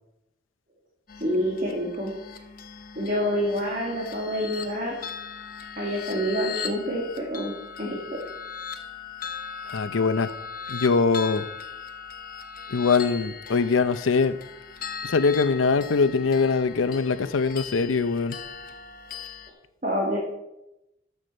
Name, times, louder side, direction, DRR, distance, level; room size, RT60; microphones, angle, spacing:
sound 1, 1.1-19.5, left 6 dB, 45° left, 0.9 m, -39 dB
voice 1, 1.2-2.1 3.0-4.9 5.8-8.2 19.8-20.2, equal, 40° right, -3 dB, 1.9 m, -27 dB
voice 2, 9.7-10.3 10.7-11.4 12.7-14.4 15.0-18.4, left 4 dB, 90° left, 13 dB, 0.6 m, -22 dB
13.0 x 6.9 x 4.4 m, 0.90 s
head